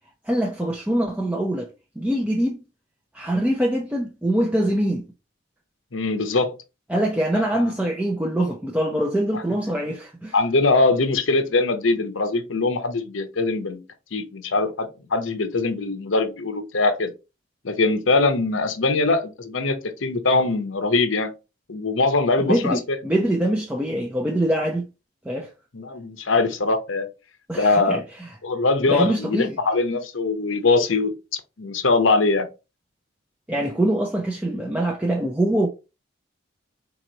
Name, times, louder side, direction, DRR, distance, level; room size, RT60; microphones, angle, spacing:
voice 1, 0.3-1.7 2.0-2.6 3.1-5.1 6.9-10.3 22.4-24.8 25.2-25.5 27.5-28.0 28.9-29.6 33.5-35.7, right 1 dB, 5° right, 0.5 m, -23 dB
voice 2, 5.9-6.6 7.5-7.7 10.3-13.8 14.1-17.1 17.6-21.3 21.7-23.0 25.7-27.1 27.6-28.0 28.4-32.5, left 3 dB, 85° left, 0.8 m, -22 dB
4.2 x 3.0 x 3.9 m
head